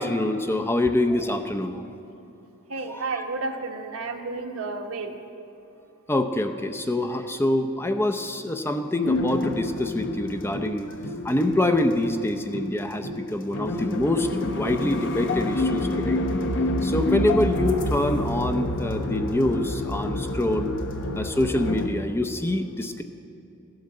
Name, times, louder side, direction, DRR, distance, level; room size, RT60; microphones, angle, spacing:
voice 1, 0.0-1.8 2.9-3.2 6.1-10.9 11.2-16.2 16.8-20.8 21.2-23.0, left 1 dB, 10° left, 6 dB, 0.6 m, -25 dB
voice 2, 2.7-5.2, right 3 dB, 70° right, 3 dB, 1.3 m, -31 dB
sound 1, 9.0-21.9, left 1 dB, 60° left, 1.0 m, -28 dB
15.0 x 12.0 x 7.7 m, 2.9 s
head